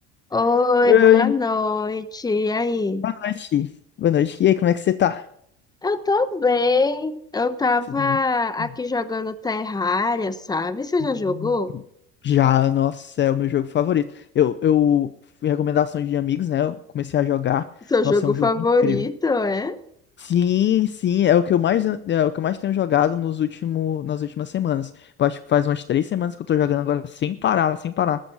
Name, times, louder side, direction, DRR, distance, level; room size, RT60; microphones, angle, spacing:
voice 1, 0.3-3.1 5.8-11.7 17.9-19.8, left 3 dB, 10° left, 12 dB, 1.0 m, -22 dB
voice 2, 0.8-1.3 3.0-3.7 4.0-5.3 8.0-8.2 8.6-8.7 11.3-11.5 12.2-15.1 15.4-17.7 18.0-18.5 18.8-19.0 20.2-28.2, left 10 dB, 35° left, 13 dB, 0.6 m, -21 dB
14.0 x 13.0 x 4.7 m, 0.69 s
supercardioid pair, 105°, 31 cm